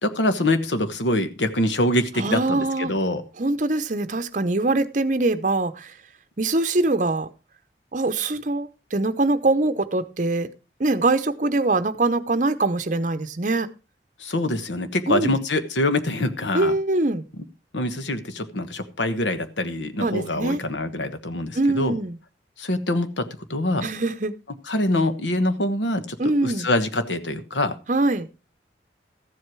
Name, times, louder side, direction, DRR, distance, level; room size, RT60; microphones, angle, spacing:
voice 1, 0.0-3.2 14.2-16.7 17.7-22.0 22.6-23.9 24.7-27.7, left 1 dB, 90° left, 1.3 m, -24 dB
voice 2, 2.2-2.9 3.4-5.9 6.4-7.3 7.9-10.5 10.8-13.7 15.1-15.4 16.5-17.2 20.0-20.6 21.5-22.2 23.8-24.3 26.2-26.7 27.9-28.3, right 2 dB, 45° right, 0.8 m, -23 dB
14.0 x 7.8 x 4.7 m
head